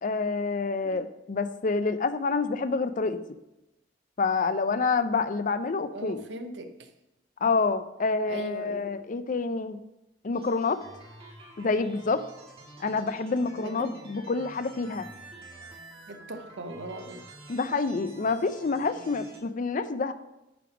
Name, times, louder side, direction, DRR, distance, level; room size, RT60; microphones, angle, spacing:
voice 1, 0.0-3.2 4.2-6.3 7.4-9.8 10.2-10.8 11.6-12.2 12.8-15.1 17.5-20.1, left 4 dB, 45° left, 12 dB, 0.5 m, -27 dB
voice 2, 5.9-6.7 8.3-8.9 13.6-14.0 16.1-17.2, right 1 dB, 80° right, 6 dB, 0.9 m, -39 dB
sound 1, 10.3-19.4, right 2 dB, 35° right, 1.7 m, -48 dB
10.0 x 3.4 x 5.9 m, 0.94 s
head